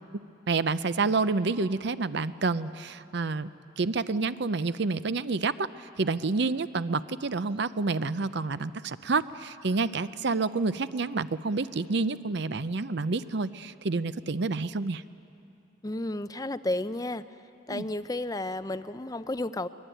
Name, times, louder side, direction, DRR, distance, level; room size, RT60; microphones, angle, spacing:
voice 1, 0.1-3.5 3.8-15.0 17.7-17.8, right 3 dB, 60° right, 14 dB, 0.6 m, -29 dB
voice 2, 15.8-17.2 17.7-19.7, left 2 dB, 20° left, 13 dB, 0.5 m, -32 dB
23.5 x 22.0 x 9.2 m, 2.6 s
head